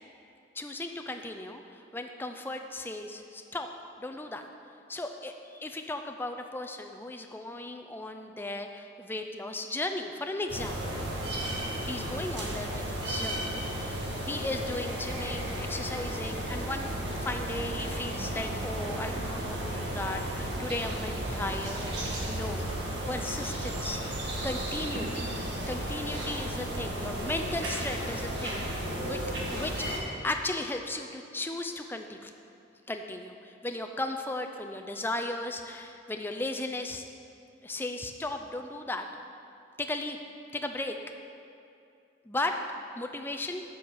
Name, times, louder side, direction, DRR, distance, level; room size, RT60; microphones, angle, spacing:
voice 1, 0.5-3.7 4.0-4.4 4.9-11.1 11.8-21.9 22.2-22.6 23.1-24.2 24.4-25.3 25.7-29.2 29.5-29.7 30.0-32.3 32.9-37.1 37.6-39.1 39.8-40.2 40.5-41.0 42.3-42.6 43.0-43.6, left 2 dB, 10° left, 5 dB, 0.4 m, -36 dB
sound 1, 10.5-30.0, right 1 dB, 70° right, 1.6 m, -34 dB
7.4 x 6.3 x 7.1 m, 2.5 s
head